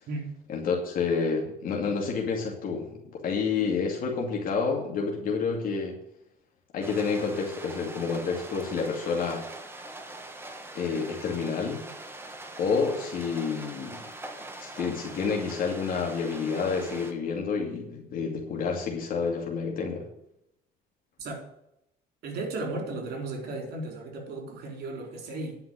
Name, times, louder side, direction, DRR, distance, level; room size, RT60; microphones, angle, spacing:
voice 1, 0.5-5.9 6.7-9.4 10.7-11.9 12.6-14.0 14.6-20.0, left 5 dB, 55° left, 0 dB, 2.4 m, -29 dB
sound 1, 6.8-17.1, right 2 dB, 15° right, 1.7 m, -43 dB
voice 2, 22.2-25.6, right 2 dB, 70° right, 2 dB, 4.2 m, -35 dB
10.5 x 5.8 x 8.8 m, 0.82 s
cardioid pair, 110°, 17 cm